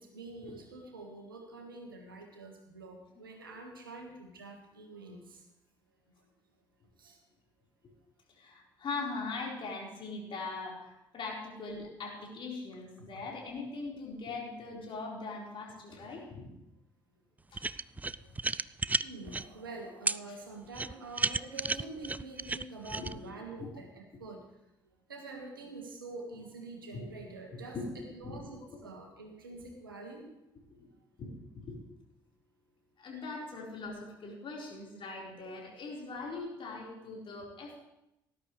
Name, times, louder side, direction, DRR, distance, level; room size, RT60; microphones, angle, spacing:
voice 1, 0.0-5.4 7.0-7.2 18.2-18.3 19.0-24.4 25.1-27.8 28.1-30.3, right 2 dB, 85° right, 3 dB, 1.6 m, -46 dB
voice 2, 8.3-16.5 17.5-17.6 20.3-20.4 23.0-23.1 23.6-23.7 26.9-27.1 27.5-28.4 30.7-30.9 31.2-31.8 33.0-37.8, left 3 dB, 50° left, -3 dB, 4.4 m, -41 dB
sound 1, 17.5-19.4 20.1-20.2 20.7-23.1, right 3 dB, 15° right, 0.3 m, -32 dB
18.5 x 11.5 x 3.2 m, 0.87 s
figure-of-eight pair, 45°, 11 cm